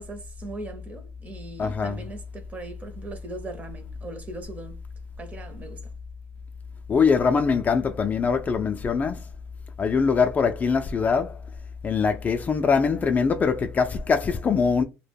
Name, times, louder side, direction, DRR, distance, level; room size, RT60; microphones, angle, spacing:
voice 1, 0.0-4.8 5.2-5.9, right 2 dB, 25° right, 0.6 m, -39 dB
voice 2, 1.6-2.0 6.9-9.2 9.8-11.4 11.8-14.8, left 5 dB, 30° left, 0.3 m, -22 dB
2.2 x 2.1 x 3.3 m
cardioid pair, 110°, 6 cm